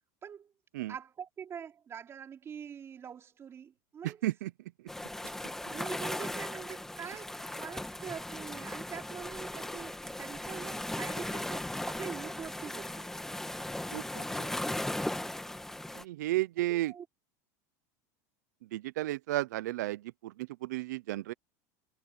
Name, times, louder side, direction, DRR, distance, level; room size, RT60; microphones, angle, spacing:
voice 1, 0.2-0.5 0.9-4.2 5.3-5.4 5.7-13.1 16.6-17.1, right 7 dB, 30° right, 4.7 m, -44 dB
sound 1, 4.9-16.0, left 1 dB, 5° left, 1.9 m, -37 dB
voice 2, 13.9-14.5 15.9-16.9 18.7-21.3, right 16 dB, 90° right, 0.5 m, -33 dB
supercardioid pair, 130°, 9 cm